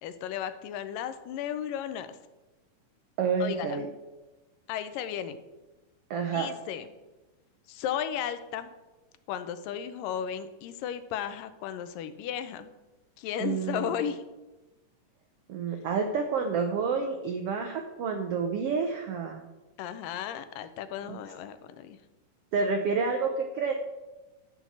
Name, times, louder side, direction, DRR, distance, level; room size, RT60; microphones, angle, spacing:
voice 1, 0.0-2.1 3.4-3.9 4.7-5.4 6.3-6.9 7.7-8.7 9.3-12.7 13.2-14.2 19.8-22.0, left 9 dB, 85° left, 11 dB, 2.4 m, -34 dB
voice 2, 3.2-3.9 6.1-6.5 13.4-13.9 15.5-19.4 21.0-21.2 22.5-23.7, right 5 dB, 75° right, 5 dB, 1.4 m, -29 dB
12.0 x 5.6 x 7.3 m, 1.1 s
omnidirectional pair, 3.8 m